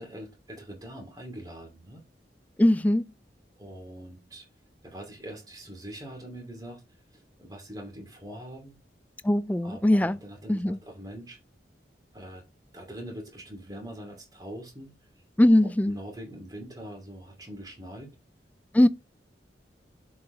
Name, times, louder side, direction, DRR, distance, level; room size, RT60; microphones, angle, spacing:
voice 1, 0.0-2.0 3.6-4.5 4.8-6.8 7.1-8.8 9.6-11.4 12.1-12.4 12.7-15.0 15.9-18.1, right 1 dB, 20° right, 2.6 m, -43 dB
voice 2, 2.6-3.1 9.2-10.2 10.5-10.8 15.4-16.0 18.7-18.9, left 1 dB, 10° left, 0.3 m, -21 dB
7.2 x 4.7 x 3.8 m
head